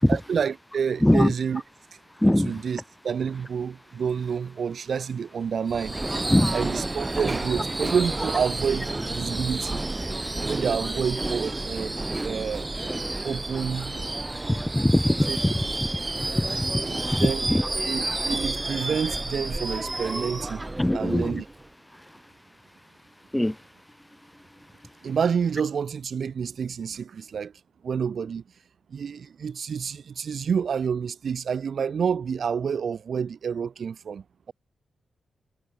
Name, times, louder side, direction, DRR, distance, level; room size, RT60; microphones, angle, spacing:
voice 1, 0.1-1.6 2.4-6.2 6.5-9.8 10.5-12.0 12.2-12.7 13.2-13.9 15.3-15.4 17.2-17.5 17.8-20.6 20.9-21.5 25.0-27.5 27.8-28.4 28.9-34.5, right 6 dB, 65° right, 4.4 m, -28 dB
voice 2, 1.0-1.3 2.2-2.5 6.3-6.6 14.5-15.5 16.4-16.7 17.1-17.6 20.8-21.4 23.3-23.5, left 1 dB, 10° left, 6.0 m, -21 dB
Subway metro underground / Screech, 5.7-21.6, right 2 dB, 20° right, 4.3 m, -30 dB
cardioid pair, 75°, 0 cm